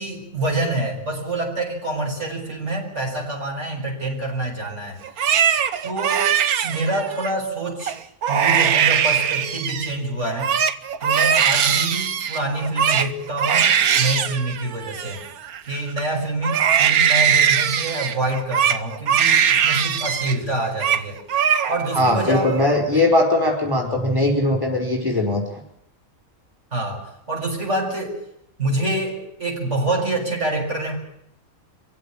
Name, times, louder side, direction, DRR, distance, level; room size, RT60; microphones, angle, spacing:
voice 1, 0.0-5.0 5.8-6.3 6.6-8.0 8.3-10.5 11.0-15.2 15.6-21.2 21.7-22.5 26.7-28.2 28.6-31.0, right 2 dB, 55° right, 0 dB, 6.9 m, -26 dB
Crying sobbing, 5.0-7.3 7.8-9.9 10.2-16.0 16.4-20.4 20.6-21.0 21.3-22.0 22.4-23.0, right 8 dB, 85° right, 1.6 m, -20 dB
voice 2, 22.0-25.6, left 1 dB, 15° right, 2 dB, 5.2 m, -20 dB
25.5 x 16.5 x 8.7 m, 0.75 s
omnidirectional pair, 1.5 m